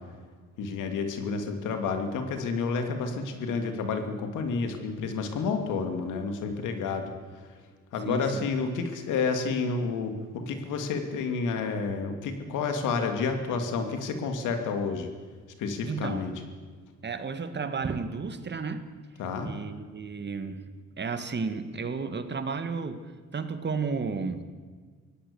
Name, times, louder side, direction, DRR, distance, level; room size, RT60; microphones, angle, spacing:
voice 1, 0.6-7.1 7.9-15.1 15.6-16.3 19.2-19.5, left 4 dB, 90° left, 6 dB, 2.7 m, -30 dB
voice 2, 8.1-8.4 15.9-16.3 17.0-18.9 19.4-20.7 21.0-23.0 23.3-24.4, right 5 dB, 35° right, 9 dB, 1.8 m, -32 dB
23.5 x 17.0 x 7.1 m, 1.5 s
cardioid pair, 90°, 30 cm